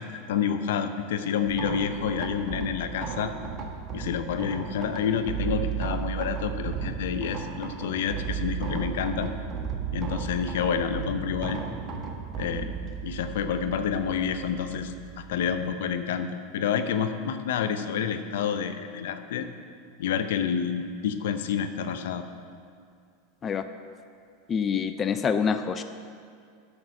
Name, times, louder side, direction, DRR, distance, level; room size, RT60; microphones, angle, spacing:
voice 1, 0.0-3.3 3.9-9.3 9.9-11.6 12.4-12.7 13.0-19.5 20.0-22.2, left 7 dB, 75° left, 9 dB, 0.6 m, -29 dB
sound 1, 1.5-15.7, right 7 dB, 35° right, 1.3 m, -34 dB
voice 2, 24.5-25.8, left 6 dB, 30° left, 9 dB, 0.4 m, -26 dB
9.7 x 6.0 x 6.5 m, 2.2 s
hypercardioid pair, 105°, 0 cm